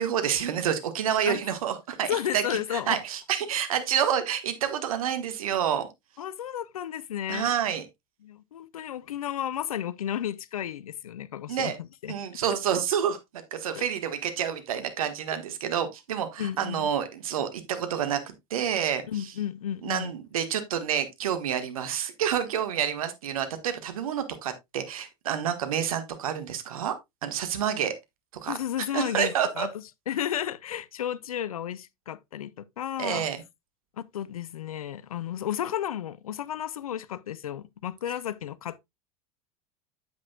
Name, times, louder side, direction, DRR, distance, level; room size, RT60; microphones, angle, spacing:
voice 1, 0.0-5.9 7.3-7.8 11.5-11.8 12.1-19.3 19.8-26.9 27.2-27.9 28.4-28.5 28.9-29.7 33.0-33.4, right 9 dB, 75° right, 1.4 m, -28 dB
voice 2, 2.1-3.0 6.2-7.5 8.2-12.4 13.8-13.9 16.4-16.9 19.1-20.1 28.5-29.7 30.1-33.3 34.0-38.8, left 10 dB, 80° left, 0.5 m, -33 dB
9.5 x 7.8 x 2.2 m
hypercardioid pair, 80°, 18 cm